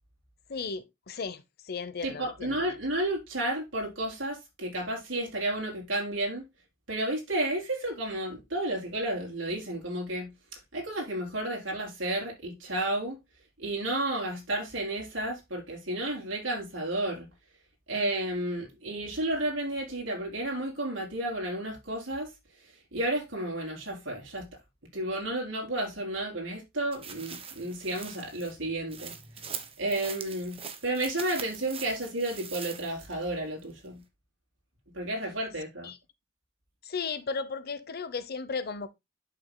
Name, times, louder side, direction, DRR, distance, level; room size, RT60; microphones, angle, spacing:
voice 1, 0.5-2.6 35.8-36.0 36.8-38.9, left 5 dB, 55° left, 0.8 m, -35 dB
voice 2, 2.0-6.4 6.9-10.3 10.7-13.2 13.6-17.3 17.9-22.3 22.9-24.5 24.9-29.1 29.8-34.0 34.9-35.9, right 1 dB, 75° right, 4.1 m, -32 dB
sound 1, 26.9-33.2 33.6-33.7, right 7 dB, 30° right, 1.1 m, -42 dB
11.0 x 6.1 x 2.2 m
head